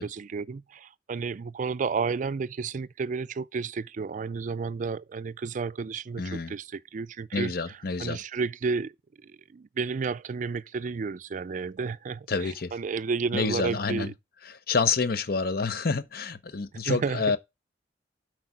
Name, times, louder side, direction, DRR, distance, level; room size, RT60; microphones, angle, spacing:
voice 1, 0.0-7.5 8.0-8.9 9.2-14.1 16.9-17.2, right 4 dB, 45° right, 0.4 m, -32 dB
voice 2, 6.2-6.5 7.3-8.2 12.3-12.8 13.3-14.1 14.5-17.4, left 4 dB, 60° left, 0.8 m, -28 dB
8.0 x 4.7 x 6.0 m
head